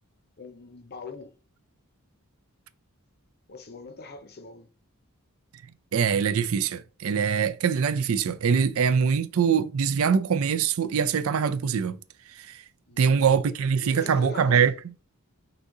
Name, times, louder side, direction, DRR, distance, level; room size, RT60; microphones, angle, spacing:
voice 1, 0.4-1.3 3.5-4.7 12.9-13.3 13.8-14.7, left 3 dB, 45° left, 0.7 m, -41 dB
voice 2, 5.9-12.0 12.4-12.6 13.0-14.7, right 6 dB, 70° right, 0.4 m, -23 dB
3.9 x 2.7 x 4.7 m
head